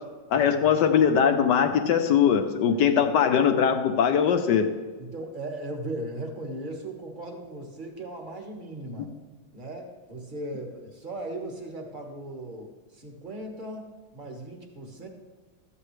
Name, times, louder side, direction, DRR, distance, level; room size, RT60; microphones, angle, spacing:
voice 1, 0.3-4.7, left 7 dB, 65° left, 6 dB, 1.2 m, -21 dB
voice 2, 5.1-9.1 9.5-15.1, right 1 dB, 25° right, 2 dB, 1.4 m, -38 dB
13.5 x 8.6 x 3.2 m, 1.4 s
omnidirectional pair, 2.3 m